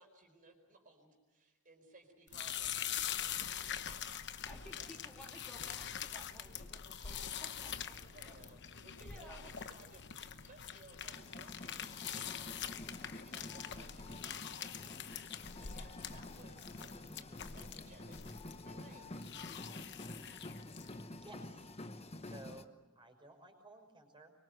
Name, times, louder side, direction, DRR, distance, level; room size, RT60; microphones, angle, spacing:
voice 1, 0.0-3.4 4.8-4.9 7.0-7.2 8.1-18.2 18.6-19.2, right 2 dB, 40° right, 2 dB, 4.7 m, -61 dB
sound 1, 2.3-21.0, left 9 dB, 55° left, 1.0 m, -44 dB
voice 2, 4.5-7.9 8.3-8.4 9.0-9.6, equal, 5° left, -2 dB, 2.5 m, -55 dB
sound 2, 7.7-20.0, equal, 85° left, 5.9 m, -66 dB
sound 3, 11.1-22.6, left 2 dB, 30° left, 1.0 m, -49 dB
voice 3, 21.2-22.7 23.0-24.3, right 1 dB, 20° right, 4 dB, 5.8 m, -56 dB
24.5 x 23.5 x 8.0 m, 1.1 s
head